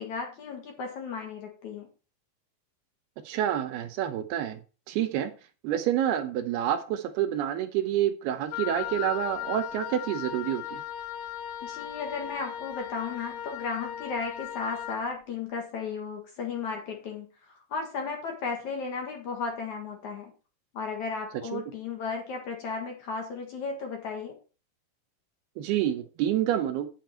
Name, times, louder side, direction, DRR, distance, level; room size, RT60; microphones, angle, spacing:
voice 1, 0.0-1.9 11.6-20.3 20.7-24.3, left 5 dB, 55° left, 3 dB, 2.6 m, -35 dB
voice 2, 3.3-4.6 4.9-5.3 5.6-10.8 21.5-21.6 25.6-26.9, right 11 dB, 75° right, 9 dB, 2.6 m, -28 dB
Wind instrument woodwind instrument, 8.5-15.0, left 11 dB, 90° left, 3.2 m, -37 dB
9.9 x 9.1 x 4.5 m, 0.35 s
omnidirectional pair, 4.9 m